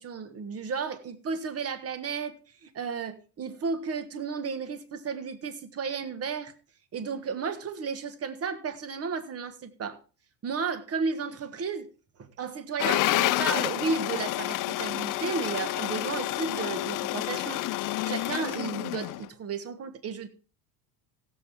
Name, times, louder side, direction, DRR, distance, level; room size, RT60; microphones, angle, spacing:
voice 1, 0.0-2.3 2.6-6.5 6.9-10.0 10.4-11.9 12.2-17.6 18.0-20.3, right 5 dB, 30° right, 1.5 m, -33 dB
sound 1, 12.8-19.3, left 16 dB, 45° left, 0.6 m, -29 dB
16.0 x 7.8 x 3.5 m
supercardioid pair, 110°, 46 cm